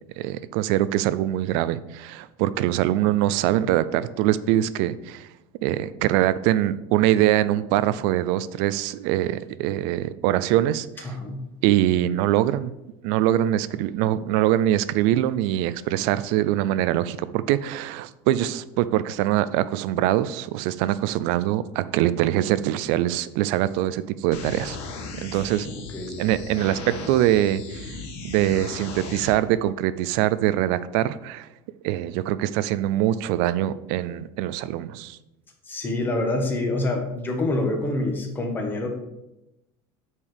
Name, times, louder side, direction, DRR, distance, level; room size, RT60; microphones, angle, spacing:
voice 1, 0.2-5.3 5.6-11.2 11.6-12.7 13.0-24.8 25.2-25.7 26.2-28.0 28.2-31.5 31.8-35.2, right 13 dB, 60° right, 16 dB, 0.5 m, -23 dB
voice 2, 11.0-11.5 25.7-26.2 35.7-38.9, left 2 dB, 15° left, 2 dB, 1.4 m, -26 dB
sound 1, 24.3-29.3, left 4 dB, 65° left, 2.1 m, -36 dB
8.6 x 4.6 x 5.0 m, 0.91 s
cardioid pair, 155°, 13 cm